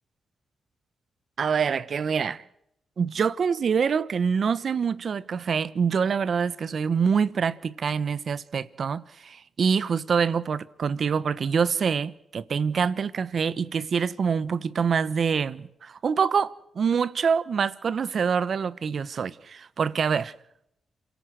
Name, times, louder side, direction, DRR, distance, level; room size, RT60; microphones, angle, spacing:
voice 1, 1.4-2.4 3.0-20.3, right 6 dB, 60° right, 1.1 m, -25 dB
28.0 x 17.0 x 8.1 m
cardioid pair, 75°, 0 cm